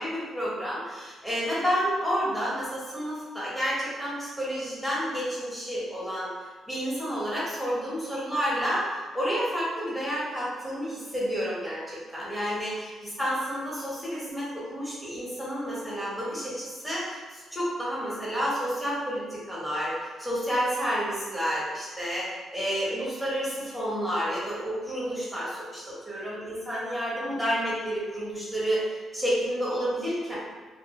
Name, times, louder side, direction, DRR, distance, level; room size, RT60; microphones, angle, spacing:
voice 1, 0.0-6.3 6.7-12.9 13.2-30.3, equal, 5° left, -8 dB, 1.0 m, -30 dB
2.5 x 2.1 x 2.8 m, 1.4 s
cardioid pair, 90°, 0 cm